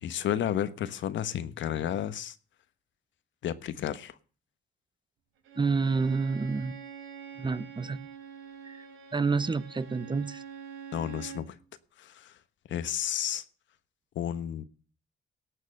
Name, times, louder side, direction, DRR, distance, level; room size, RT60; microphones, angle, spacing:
voice 1, 0.0-2.4 3.4-4.2 10.9-11.6 12.0-12.4 12.7-13.4 14.1-14.6, left 10 dB, 70° left, 13 dB, 1.2 m, -32 dB
Bowed string instrument, 5.4-11.5, right 7 dB, 85° right, 3.4 m, -45 dB
voice 2, 5.6-6.8 7.4-8.0 8.6-8.8 9.1-10.4, right 4 dB, 25° right, 16 dB, 0.8 m, -29 dB
18.0 x 6.6 x 6.5 m, 0.38 s
cardioid pair, 90°, 20 cm